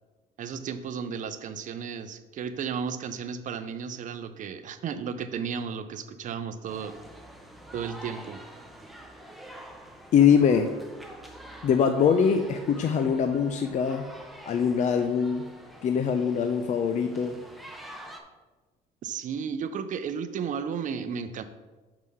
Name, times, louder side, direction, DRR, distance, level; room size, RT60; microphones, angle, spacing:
voice 1, 0.4-7.0 7.7-8.4 19.0-21.4, right 6 dB, 50° right, 11 dB, 0.6 m, -34 dB
sound 1, 6.7-18.2, right 1 dB, ahead, 0.8 m, -47 dB
voice 2, 10.1-10.7 11.6-14.1 14.5-15.4 15.8-17.4, left 7 dB, 45° left, 7 dB, 0.5 m, -23 dB
5.5 x 4.9 x 5.5 m, 1.2 s
cardioid pair, 110°, 17 cm